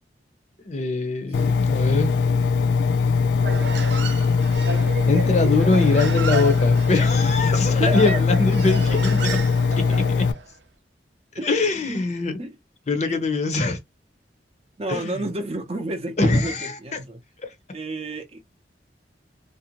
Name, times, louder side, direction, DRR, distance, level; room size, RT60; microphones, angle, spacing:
voice 1, 0.6-2.1 4.6-9.4 9.7-10.3 11.4-12.4 12.9-13.8 14.9-15.2 16.2-16.8 17.4-17.5, left 3 dB, 40° left, 0.6 m, -23 dB
Engine, 1.3-10.3, left 5 dB, 85° left, 0.3 m, -21 dB
Human voice, 3.4-10.5, right 4 dB, 85° right, 0.6 m, -32 dB
voice 2, 7.8-8.2 11.4-11.5 11.9-12.0 12.4-12.6 13.0-13.2 14.8-17.2 17.7-18.4, right 1 dB, 35° right, 0.6 m, -30 dB
2.5 x 2.1 x 2.9 m
head